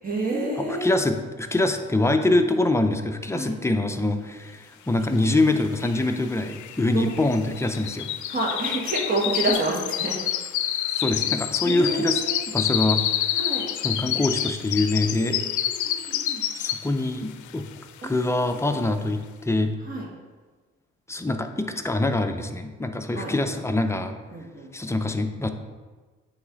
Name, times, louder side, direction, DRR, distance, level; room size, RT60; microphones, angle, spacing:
voice 1, 0.0-0.9 3.3-3.5 6.9-7.1 8.3-10.2 11.6-12.4 13.3-13.7 15.2-16.4 18.0-18.2 18.5-18.9 19.8-20.1 23.1-23.6 24.3-25.1, right 2 dB, 30° right, -3 dB, 1.9 m, -29 dB
voice 2, 0.7-8.2 10.9-13.3 13.8-15.4 16.5-17.7 18.0-19.7 21.1-24.1 24.7-25.5, left 2 dB, 10° left, 6 dB, 0.5 m, -24 dB
sound 1, 5.3-5.4 5.6-17.1 17.5-17.8 18.2-18.3, left 11 dB, 75° left, 0.5 m, -28 dB
8.7 x 3.2 x 3.9 m, 1.3 s
cardioid pair, 90°, 30 cm